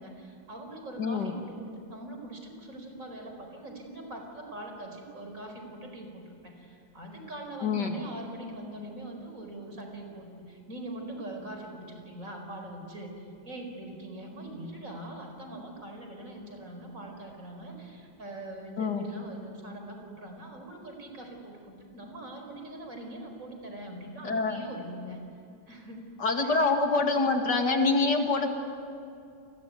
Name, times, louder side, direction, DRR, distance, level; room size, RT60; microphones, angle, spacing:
voice 1, 0.0-25.2 25.7-26.1 26.4-26.6, right 1 dB, 40° right, 3 dB, 5.0 m, -42 dB
voice 2, 1.0-1.3 7.6-8.0 18.8-19.0 24.2-24.6 26.2-28.5, left 3 dB, 55° left, 4 dB, 2.9 m, -26 dB
29.0 x 21.5 x 9.4 m, 2.5 s
omnidirectional pair, 2.3 m